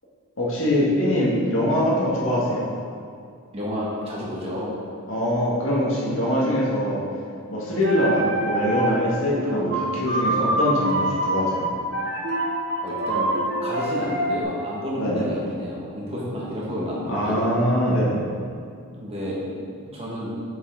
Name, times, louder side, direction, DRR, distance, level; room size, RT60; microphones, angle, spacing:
voice 1, 0.4-2.7 5.1-7.0 7.5-11.7 15.0-15.3 17.1-18.2, equal, 60° left, -6 dB, 1.7 m, -23 dB
voice 2, 3.5-4.8 12.8-13.3 13.6-17.4 18.9-20.3, equal, 25° right, -6 dB, 1.5 m, -30 dB
sound 1, 7.7-9.1 9.3-14.4, right 1 dB, 50° right, 0.9 m, -25 dB
7.5 x 5.7 x 3.8 m, 2.3 s
head